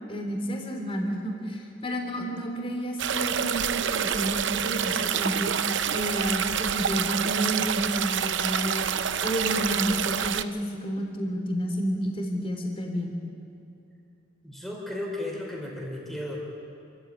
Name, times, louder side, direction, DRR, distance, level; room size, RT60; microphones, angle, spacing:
voice 1, 0.1-5.5 5.9-8.8 9.2-10.6 10.8-13.2, equal, 30° left, 2 dB, 3.4 m, -30 dB
sound 1, 3.0-10.4, right 8 dB, 70° right, 0.7 m, -27 dB
voice 2, 14.4-16.4, left 1 dB, ahead, -2 dB, 4.7 m, -34 dB
29.0 x 14.5 x 8.8 m, 2.6 s
head